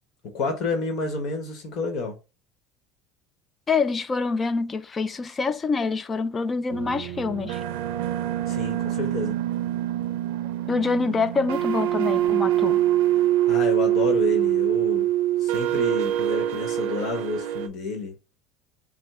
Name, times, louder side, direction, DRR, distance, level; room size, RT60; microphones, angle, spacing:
voice 1, 0.3-2.2 8.5-9.4 13.5-15.1 15.4-18.1, left 3 dB, 55° left, 1.3 m, -29 dB
voice 2, 3.7-7.6 10.7-12.8, left 4 dB, 20° left, 0.4 m, -26 dB
sound 1, 6.7-17.7, right 13 dB, 85° right, 0.5 m, -24 dB
5.2 x 2.2 x 3.6 m
supercardioid pair, 130°, 0 cm